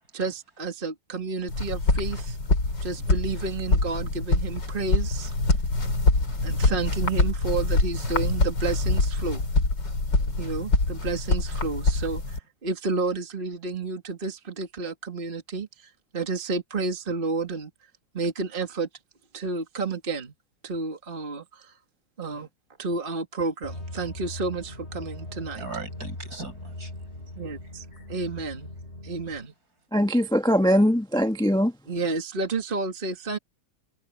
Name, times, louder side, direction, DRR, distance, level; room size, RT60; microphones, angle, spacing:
voice 1, 0.1-2.4 2.8-5.3 6.4-9.4 10.4-17.7 18.1-18.9 19.3-20.3 20.6-21.8 22.2-22.5 22.8-25.7 27.4-28.7 29.0-29.5 31.9-33.4, right 3 dB, 30° right, 2.0 m, -31 dB
sound 1, 1.5-12.4, left 2 dB, 75° left, 5.0 m, -25 dB
voice 2, 5.7-6.3 6.7-6.8 25.5-26.9 27.9-28.1, right 3 dB, 55° right, 6.5 m, -39 dB
sound 2, 23.6-29.5, left 1 dB, 35° left, 4.6 m, -40 dB
voice 3, 29.9-31.7, equal, 5° left, 0.8 m, -21 dB
omnidirectional pair, 1.9 m